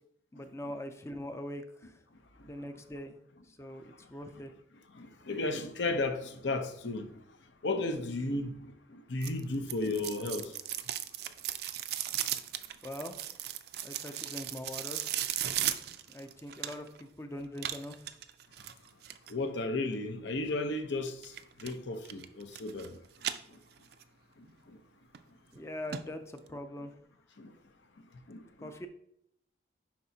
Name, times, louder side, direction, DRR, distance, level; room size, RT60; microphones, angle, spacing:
voice 1, 0.3-2.0 2.4-3.1 3.5-4.5 12.8-13.2 13.8-15.0 16.1-18.0 25.5-26.9 28.6-28.9, left 1 dB, 15° left, 0.4 m, -42 dB
voice 2, 4.9-7.1 7.6-10.5 19.3-21.3 21.6-23.0 24.7-24.8 27.4-27.5 28.3-28.9, left 2 dB, 80° left, 0.8 m, -34 dB
sound 1, 9.2-17.0 17.6-19.3 21.2-21.7 22.1-22.9 23.2-24.0 24.4-24.5 25.1-25.2 25.6-25.7 25.9-26.0 26.4-26.5, right 11 dB, 55° right, 0.4 m, -36 dB
10.5 x 4.2 x 2.8 m
head